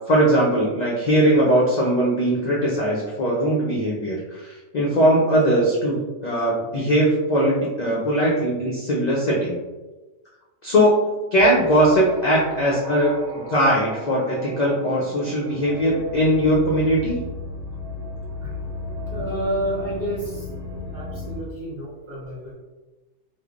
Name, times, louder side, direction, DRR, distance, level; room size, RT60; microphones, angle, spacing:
voice 1, 0.1-9.6 10.6-17.2, right 1 dB, 75° left, -5 dB, 0.4 m, -20 dB
sound 1, 11.4-21.4, left 1 dB, 70° right, 1.0 m, -35 dB
voice 2, 19.1-20.5 20.9-22.5, right 1 dB, 55° right, -8 dB, 0.5 m, -29 dB
3.1 x 2.0 x 2.3 m, 1.2 s
omnidirectional pair, 1.3 m